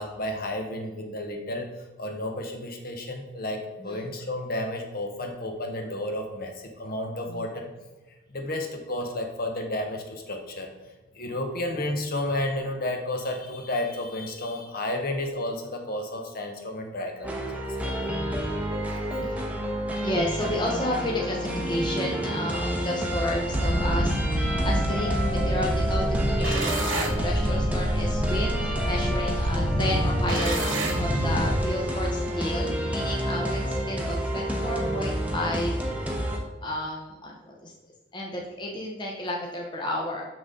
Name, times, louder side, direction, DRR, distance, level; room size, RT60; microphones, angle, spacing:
voice 1, 0.0-1.7 2.0-7.7 8.3-10.7 11.1-18.1 19.2-19.3 36.4-36.6, left 1 dB, 45° left, 4 dB, 1.0 m, -32 dB
sound 1, 17.2-36.4, equal, 5° right, 0.8 m, -29 dB
voice 2, 20.0-37.7 38.1-40.2, left 1 dB, 20° left, -1 dB, 0.8 m, -32 dB
sound 2, 23.5-31.6, equal, 75° right, 1.5 m, -27 dB
6.6 x 6.0 x 3.7 m, 1.2 s
head